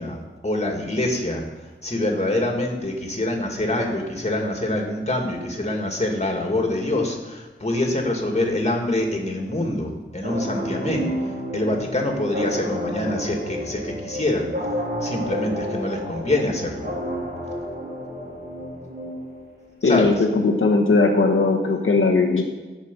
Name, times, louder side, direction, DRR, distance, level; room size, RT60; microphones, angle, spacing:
voice 1, 0.0-1.5 1.8-11.1 11.5-14.5 15.0-16.9 19.8-20.1, left 1 dB, 30° left, 1 dB, 2.1 m, -25 dB
sound 1, 10.2-19.7, equal, 50° right, 2.7 m, -31 dB
voice 2, 19.8-20.1 20.4-22.4, left 3 dB, 75° left, 0 dB, 1.1 m, -18 dB
13.0 x 5.2 x 5.4 m, 1.3 s
wide cardioid pair, 55°, 21 cm